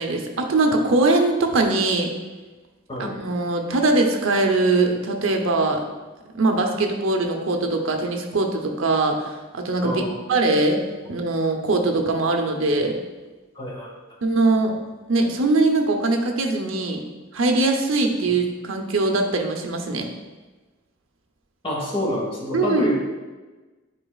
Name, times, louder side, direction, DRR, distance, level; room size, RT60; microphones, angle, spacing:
voice 1, 0.0-2.1 3.0-5.8 6.3-9.2 9.5-10.8 11.1-13.0 14.2-14.8 15.1-17.0 17.3-20.1 22.5-22.9, right 2 dB, 75° right, 3 dB, 0.8 m, -21 dB
voice 2, 13.5-13.9 21.6-23.0, equal, 25° left, -3 dB, 1.5 m, -26 dB
10.0 x 4.8 x 2.4 m, 1.2 s
head